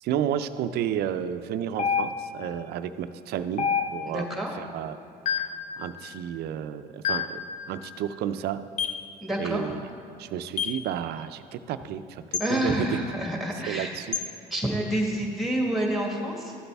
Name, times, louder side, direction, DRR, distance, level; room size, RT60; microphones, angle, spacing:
voice 1, 0.0-4.3 4.6-5.0 5.8-7.4 7.7-8.6 9.4-9.8 10.2-13.0 13.7-14.2, right 10 dB, 75° right, 11 dB, 0.5 m, -31 dB
sound 1, 1.8-2.5 3.6-4.3 5.3-5.7 7.0-7.5 8.8-9.1 10.6-10.9 12.3-12.5 14.1-14.3, left 7 dB, 45° left, 0.6 m, -28 dB
voice 2, 4.1-4.5 9.2-9.7 12.4-13.9 14.5-16.5, right 1 dB, ahead, 0 dB, 1.7 m, -28 dB
13.5 x 8.1 x 3.4 m, 2.6 s
cardioid pair, 110°, 17 cm